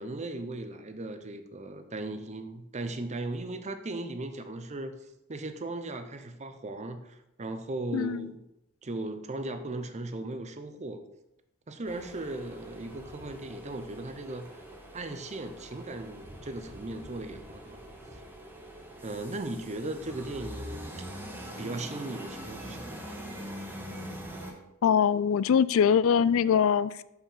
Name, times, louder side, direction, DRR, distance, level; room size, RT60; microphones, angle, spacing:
voice 1, 0.0-5.0 5.3-8.4 8.8-11.0 11.7-14.6 14.9-17.8 18.1-18.2 19.0-21.1 21.6-23.0, right 2 dB, 30° right, 0.7 m, -37 dB
voice 2, 7.9-8.3 24.8-27.0, left 7 dB, 65° left, 0.3 m, -23 dB
sound 1, 11.8-24.5, equal, 10° right, 1.3 m, -43 dB
6.6 x 5.8 x 5.6 m
head